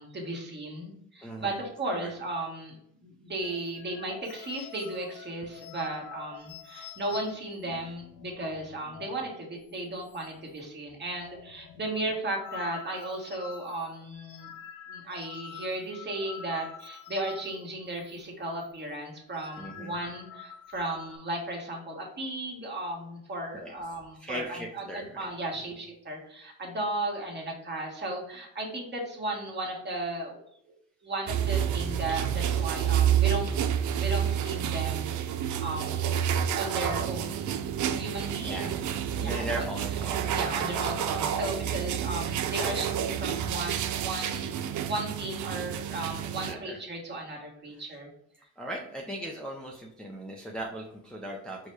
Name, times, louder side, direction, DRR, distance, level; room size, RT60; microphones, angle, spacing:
voice 1, 0.0-14.5 14.9-30.4 31.0-33.6 34.0-35.2 35.6-36.1 36.6-37.7 37.9-38.8 39.2-39.7 40.3-48.1, right 1 dB, 35° right, -1 dB, 1.6 m, -35 dB
voice 2, 1.2-1.6 1.9-2.1 19.6-19.9 23.5-23.7 24.2-25.3 38.4-38.8 39.1-40.4 46.4-46.8 48.6-51.6, right 1 dB, 5° left, -2 dB, 0.7 m, -38 dB
sound 1, 3.4-9.3 9.6-9.8 10.0-10.6 10.9-18.2 18.5-18.7 19.2-21.2, left 9 dB, 80° left, 0.5 m, -47 dB
sound 2, 31.3-46.5, right 9 dB, 75° right, 0.5 m, -29 dB
4.6 x 2.2 x 4.5 m, 0.70 s
cardioid pair, 90°, 30 cm